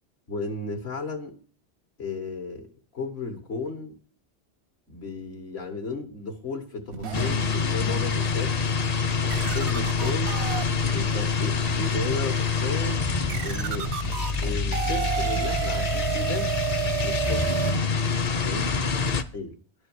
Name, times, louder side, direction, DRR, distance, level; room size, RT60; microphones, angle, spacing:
voice 1, 0.3-1.4 2.0-4.0 4.9-8.8 9.2-10.4 10.9-13.0 13.4-13.9 14.4-16.5 17.0-17.7 18.4-18.7 19.2-19.6, left 3 dB, 80° left, 3 dB, 2.1 m, -34 dB
sound 1, 6.9-8.1 8.6-8.8 9.3-17.8, right 10 dB, 85° right, 1.0 m, -32 dB
sound 2, 7.1-19.2, left 5 dB, 45° left, 0.7 m, -26 dB
11.0 x 4.7 x 7.9 m, 0.43 s
omnidirectional pair, 1.1 m